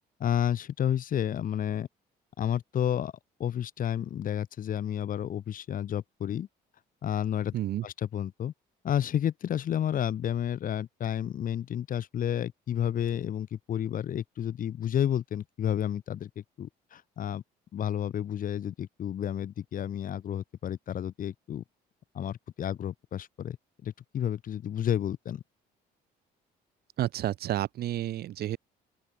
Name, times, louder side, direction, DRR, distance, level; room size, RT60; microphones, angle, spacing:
voice 1, 0.2-1.9 2.4-3.1 3.4-6.5 7.0-7.5 7.8-8.5 8.8-17.4 17.7-21.6 22.1-23.6 23.8-25.4, left 10 dB, 55° left, 4.9 m, -31 dB
voice 2, 7.5-7.9 27.0-28.6, right 13 dB, 65° right, 7.2 m, -30 dB
open air
cardioid pair, 110°, 17 cm